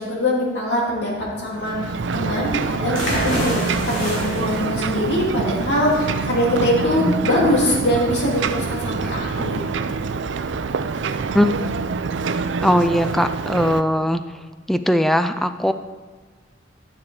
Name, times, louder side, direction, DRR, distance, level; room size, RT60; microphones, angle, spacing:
voice 1, 0.0-9.7, left 1 dB, 65° left, -5 dB, 2.8 m, -22 dB
Ocean, 1.5-13.8, right 4 dB, 75° right, 0.5 m, -26 dB
sound 1, 2.9-10.6, equal, 90° left, 3.1 m, -31 dB
voice 2, 12.6-14.2 14.7-15.7, equal, ahead, 9 dB, 0.3 m, -19 dB
12.5 x 6.7 x 4.8 m, 1.3 s
head